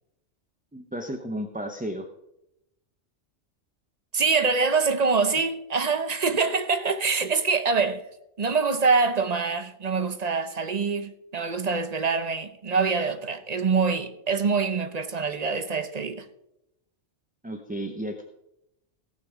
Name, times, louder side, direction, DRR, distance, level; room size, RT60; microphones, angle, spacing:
voice 1, 0.7-2.1 17.4-18.2, equal, 10° right, 0.7 m, -33 dB
voice 2, 4.1-8.0 8.4-16.3, right 4 dB, 40° right, 0.8 m, -25 dB
17.5 x 6.7 x 5.0 m
omnidirectional pair, 1.2 m